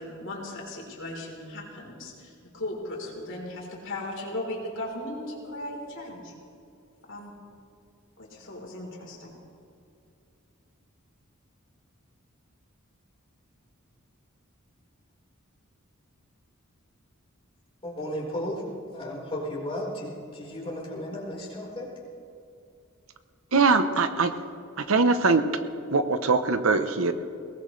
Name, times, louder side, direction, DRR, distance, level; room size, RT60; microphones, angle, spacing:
voice 1, 0.0-6.3 7.0-7.3 8.2-9.3, left 1 dB, 65° left, -2 dB, 3.9 m, -37 dB
voice 2, 17.8-18.6 18.9-21.9, left 1 dB, 25° left, -4 dB, 4.3 m, -34 dB
voice 3, 23.5-24.3 24.8-25.4 25.9-27.1, right 4 dB, 70° right, 10 dB, 0.9 m, -22 dB
22.0 x 18.5 x 3.3 m, 2.5 s
head